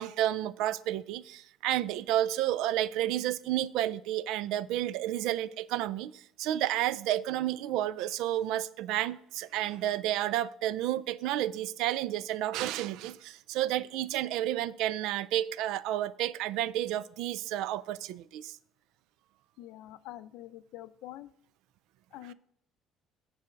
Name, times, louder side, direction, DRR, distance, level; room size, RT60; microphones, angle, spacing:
voice 1, 0.0-18.6 22.2-22.3, right 13 dB, 70° right, 0.3 m, -31 dB
voice 2, 19.6-21.3 22.1-22.3, left 14 dB, 80° left, 0.4 m, -45 dB
8.9 x 4.1 x 6.3 m
cardioid pair, 180°, 0 cm